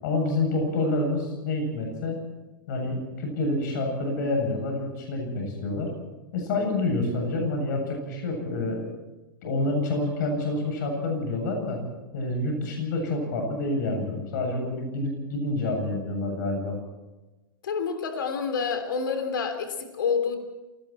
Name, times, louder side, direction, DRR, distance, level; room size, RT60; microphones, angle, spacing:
voice 1, 0.0-2.2 2.7-5.9 6.3-8.9 9.4-11.8 12.1-16.8, left 2 dB, 60° left, 2 dB, 7.9 m, -28 dB
voice 2, 17.6-20.4, left 6 dB, 80° left, 7 dB, 3.5 m, -28 dB
30.0 x 19.5 x 4.4 m, 1.1 s
hypercardioid pair, 110°, 11 cm